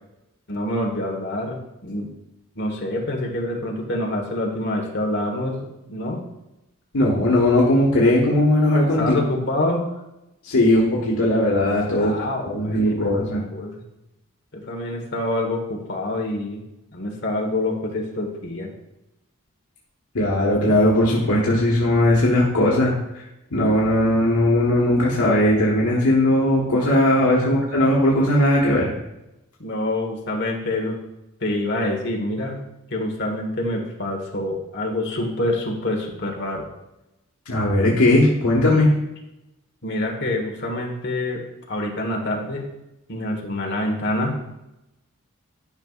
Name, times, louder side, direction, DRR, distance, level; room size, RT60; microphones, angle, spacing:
voice 1, 0.5-2.1 2.5-5.6 5.9-6.2 9.0-9.8 11.9-13.9 14.5-16.6 16.9-18.7 27.3-27.5 29.6-31.0 31.4-32.6 32.9-36.7 39.8-41.4 41.7-42.6 43.1-44.4, left 1 dB, 50° left, 0 dB, 1.4 m, -26 dB
voice 2, 6.9-9.2 10.4-12.1 12.4-13.4 20.1-22.9 23.5-28.9 37.5-39.0, left 1 dB, 90° left, -4 dB, 1.4 m, -18 dB
11.5 x 5.4 x 2.4 m, 0.93 s
head